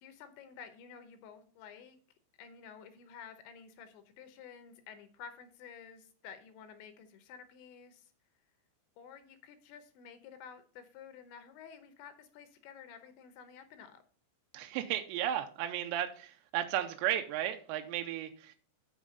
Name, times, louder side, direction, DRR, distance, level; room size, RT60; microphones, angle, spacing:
voice 1, 0.0-2.0 2.4-8.1 9.0-14.0, left 7 dB, 80° left, 9 dB, 3.1 m, -52 dB
voice 2, 14.5-18.6, right 11 dB, 80° right, 6 dB, 2.6 m, -34 dB
7.3 x 7.0 x 5.3 m, 0.44 s
omnidirectional pair, 5.5 m